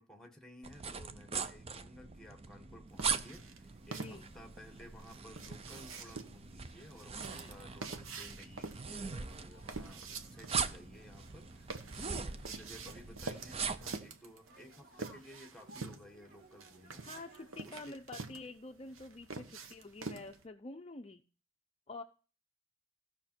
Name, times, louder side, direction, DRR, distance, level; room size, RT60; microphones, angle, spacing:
voice 1, 0.0-17.1 17.6-18.0, left 1 dB, 5° left, 1.3 m, -56 dB
sound 1, 0.6-14.0, right 5 dB, 30° right, 0.5 m, -41 dB
sound 2, 3.0-20.4, right 3 dB, 80° right, 1.0 m, -46 dB
voice 2, 4.0-4.3 7.2-7.6 12.0-12.3 17.0-21.2 21.9-22.0, left 2 dB, 30° left, 0.5 m, -48 dB
sound 3, 9.5-17.8, right 2 dB, 50° right, 2.2 m, -62 dB
15.5 x 5.8 x 4.4 m
head